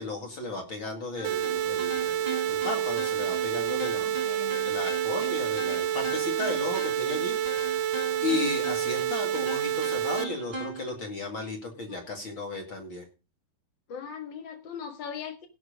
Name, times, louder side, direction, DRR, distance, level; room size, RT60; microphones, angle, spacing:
voice 1, 0.0-4.2 4.6-7.4 8.2-13.1, left 3 dB, 40° left, 2.0 m, -34 dB
sound 1, 1.2-10.9, right 2 dB, 15° right, 2.7 m, -40 dB
sound 2, 1.2-10.2, right 10 dB, 80° right, 2.8 m, -28 dB
voice 2, 3.9-4.7 11.9-12.0 13.9-15.5, left 7 dB, 70° left, 1.0 m, -40 dB
17.0 x 6.2 x 5.1 m
omnidirectional pair, 4.8 m